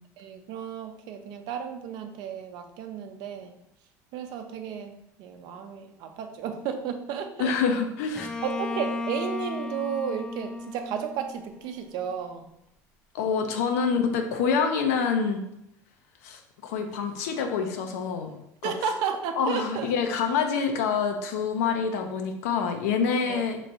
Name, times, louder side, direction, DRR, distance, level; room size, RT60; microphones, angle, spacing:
voice 1, 0.2-3.5 4.1-7.8 8.4-12.5 18.6-19.9 23.3-23.4, right 7 dB, 65° right, 6 dB, 0.5 m, -33 dB
voice 2, 7.4-8.3 13.1-15.4 16.2-18.7 19.4-23.6, left 6 dB, 90° left, 5 dB, 0.6 m, -26 dB
Bowed string instrument, 8.2-11.9, left 2 dB, 10° left, 0.4 m, -34 dB
3.1 x 2.6 x 4.2 m, 0.80 s
supercardioid pair, 115°, 8 cm